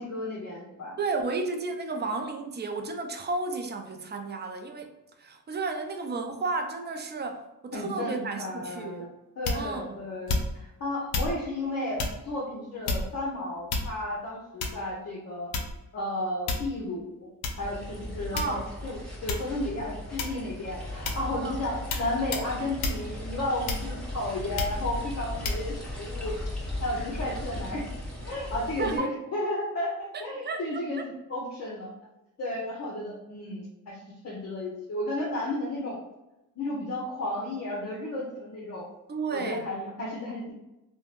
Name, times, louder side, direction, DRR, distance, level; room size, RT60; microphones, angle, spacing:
voice 1, 0.0-0.9 7.7-9.1 9.4-15.5 15.9-17.3 17.6-26.4 26.8-27.8 28.2-31.9 32.4-36.0 36.6-38.8 39.3-40.5, left 1 dB, 40° left, -5 dB, 0.8 m, -33 dB
voice 2, 1.0-4.9 5.2-9.1 9.5-10.1 18.3-18.6 21.4-21.6 28.8-29.1 30.1-30.8 39.1-39.7, right 3 dB, 30° right, 5 dB, 0.4 m, -32 dB
sound 1, 9.4-9.8 10.3-10.7 11.1-11.4 12.0-12.2 12.9-13.2 13.7-14.1 14.6-14.9 15.5-15.9 16.5-16.8 17.4-17.6 18.4-18.8 19.3-19.5 20.2-20.5 21.1-21.3 21.9-22.1 22.3-22.5 22.8-23.0 23.7-24.1 24.6-24.8 25.4-25.6, left 3 dB, 70° left, 0.6 m, -30 dB
sound 2, 17.6-29.0, left 1 dB, ahead, 1.1 m, -37 dB
2.9 x 2.2 x 2.5 m, 0.97 s
supercardioid pair, 65°, 39 cm